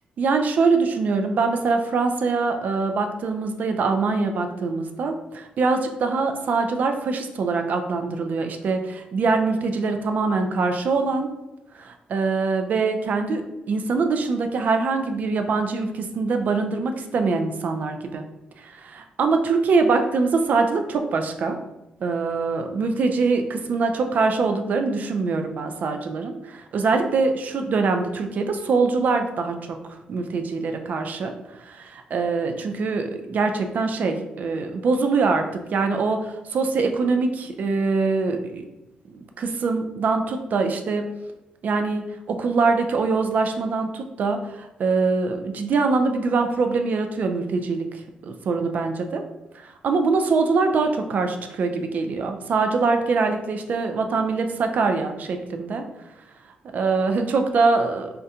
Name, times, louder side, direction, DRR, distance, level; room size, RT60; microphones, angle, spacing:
voice 1, 0.2-11.3 11.7-18.2 18.6-21.6 22.0-29.6 30.1-31.3 31.6-38.6 39.1-41.1 41.6-49.2 49.5-55.8 56.7-58.1, right 4 dB, 60° right, 6 dB, 0.4 m, -23 dB
3.7 x 2.2 x 2.7 m, 0.97 s
cardioid pair, 75°, 3 cm